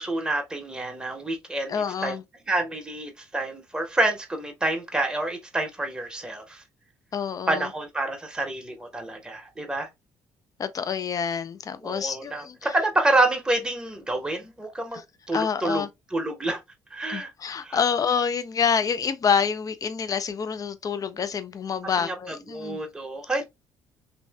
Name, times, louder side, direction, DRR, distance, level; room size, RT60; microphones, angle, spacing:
voice 1, 0.0-1.7 2.0-2.2 2.5-6.6 7.5-9.9 11.8-15.0 15.3-15.8 16.1-16.6 16.9-17.3 17.6-17.8 22.0-23.5, right 2 dB, 5° right, 0.8 m, -28 dB
voice 2, 1.7-2.2 7.1-7.7 10.6-12.7 15.3-15.9 17.1-22.8, left 6 dB, 30° left, 0.4 m, -27 dB
3.0 x 2.6 x 2.3 m
hypercardioid pair, 50°, 11 cm